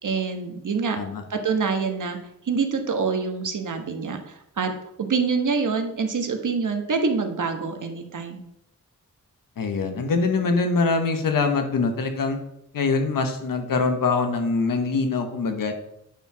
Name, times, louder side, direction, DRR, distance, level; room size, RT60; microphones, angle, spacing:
voice 1, 0.0-1.0 1.3-2.2 2.4-4.7 5.0-8.4, right 5 dB, 65° right, 5 dB, 1.4 m, -26 dB
voice 2, 9.6-12.4 12.7-15.7, left 4 dB, 90° left, 6 dB, 1.2 m, -23 dB
9.0 x 4.6 x 6.0 m, 0.80 s
cardioid pair, 55°, 33 cm